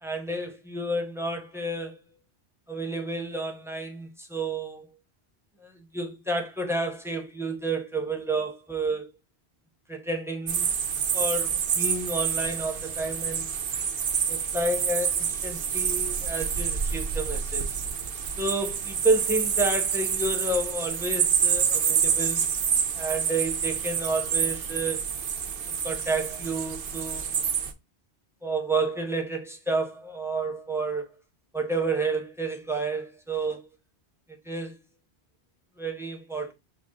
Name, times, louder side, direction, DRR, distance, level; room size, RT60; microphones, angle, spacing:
voice 1, 0.0-2.0 2.7-4.9 5.6-9.1 9.9-10.7 11.1-13.5 14.3-17.7 18.4-22.5 23.0-25.0 25.8-27.5 28.4-31.0 31.5-33.6 34.5-34.8 35.8-36.5, right 2 dB, 5° right, 0.6 m, -30 dB
sound 1, 10.5-27.7, right 7 dB, 60° right, 0.7 m, -27 dB
5.8 x 2.0 x 3.7 m
omnidirectional pair, 1.1 m